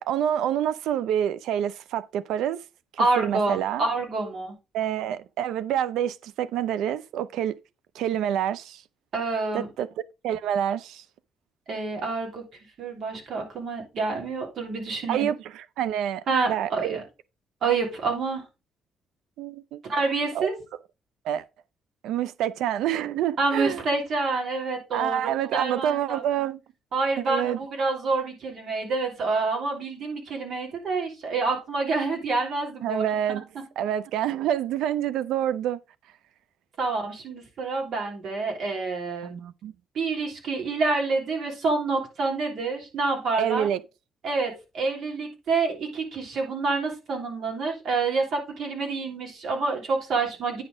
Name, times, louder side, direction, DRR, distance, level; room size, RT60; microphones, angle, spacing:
voice 1, 0.0-2.6 3.2-3.9 4.7-7.6 7.9-8.8 9.5-9.9 10.2-11.0 15.1-17.0 19.4-19.8 20.3-20.5 21.2-21.4 22.0-23.8 24.9-26.6 27.3-27.6 32.8-33.4 33.8-35.8 39.2-39.7 43.4-43.8, right 10 dB, 85° right, 0.4 m, -27 dB
voice 2, 3.0-4.5 9.1-9.7 11.7-12.4 12.8-15.3 16.3-17.0 17.6-18.4 19.8-20.5 23.4-26.2 26.9-33.4 36.8-39.4 39.9-43.7 44.2-50.6, right 3 dB, 65° right, 3.2 m, -27 dB
9.7 x 4.2 x 5.0 m
cardioid pair, 90°, 0 cm